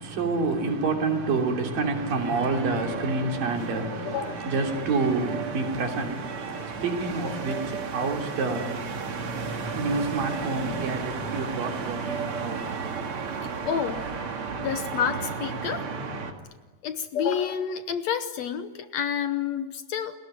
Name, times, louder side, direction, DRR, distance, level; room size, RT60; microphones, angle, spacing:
voice 1, 0.0-12.8, right 3 dB, 85° right, 5.0 m, -28 dB
sound 1, 1.7-16.3, right 5 dB, 45° right, 2.6 m, -34 dB
voice 2, 4.1-4.4 13.6-14.0 14.6-15.9 16.8-20.2, left 8 dB, 65° left, 1.9 m, -29 dB
29.5 x 21.0 x 9.4 m
omnidirectional pair, 3.9 m